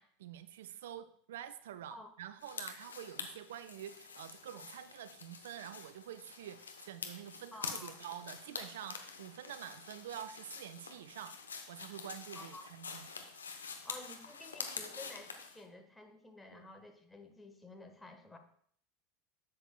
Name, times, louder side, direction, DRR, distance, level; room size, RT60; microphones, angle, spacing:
voice 1, 0.0-11.3 11.7-13.1 16.5-16.7, right 10 dB, 65° right, 13 dB, 0.4 m, -47 dB
sound 1, 2.4-15.6, left 5 dB, 80° left, 0.8 m, -47 dB
voice 2, 7.5-8.0 12.3-12.7 13.8-18.4, left 2 dB, 10° left, 4 dB, 1.3 m, -52 dB
11.0 x 7.4 x 2.3 m, 0.62 s
figure-of-eight pair, 80°, 0 cm